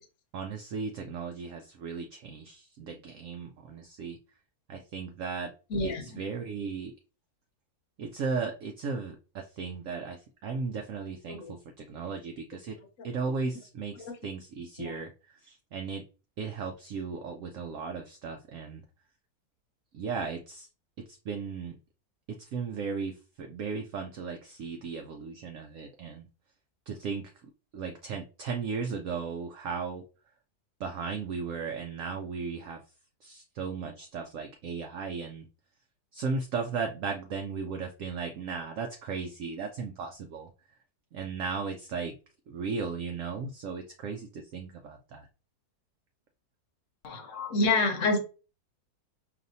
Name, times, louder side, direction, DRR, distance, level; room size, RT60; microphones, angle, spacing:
voice 1, 0.3-4.2 4.7-5.5 5.8-6.9 8.0-12.8 13.0-16.0 16.4-18.8 19.9-20.7 21.0-21.8 22.3-26.3 26.9-27.3 27.7-30.0 30.8-32.8 33.2-35.5 36.1-40.5 41.1-42.1 42.5-45.3, right 5 dB, 65° right, 4 dB, 0.8 m, -36 dB
voice 2, 5.7-6.2 11.3-11.5 14.0-14.2 14.8-15.0 47.0-48.2, left 2 dB, 60° left, 5 dB, 1.1 m, -28 dB
4.9 x 2.8 x 2.6 m, 0.33 s
omnidirectional pair, 1.7 m